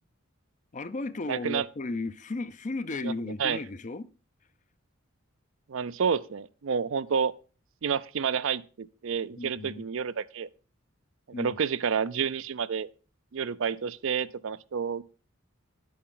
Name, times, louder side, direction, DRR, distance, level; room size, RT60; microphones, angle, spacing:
voice 1, 0.7-4.1 9.4-9.9 11.3-11.6, left 2 dB, 35° left, 0.5 m, -35 dB
voice 2, 1.3-1.7 3.0-3.1 3.4-3.6 5.7-7.3 7.8-10.5 11.4-12.9 13.3-15.0, right 6 dB, 65° right, 0.5 m, -29 dB
10.0 x 8.5 x 3.8 m
head